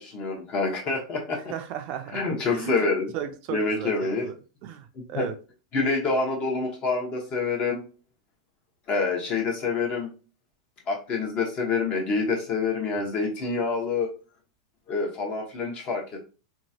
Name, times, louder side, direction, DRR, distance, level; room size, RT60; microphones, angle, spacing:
voice 1, 0.0-1.5 2.1-3.1 3.5-4.3 5.1-5.2 5.7-7.8 8.9-10.1 10.9-14.1 14.9-16.2, left 4 dB, 35° left, 1 dB, 1.1 m, -27 dB
voice 2, 1.5-2.2 2.5-4.3 4.6-5.3 12.9-13.1, right 9 dB, 45° right, 7 dB, 0.4 m, -35 dB
2.9 x 2.4 x 2.8 m, 0.34 s
hypercardioid pair, 115°, 3 cm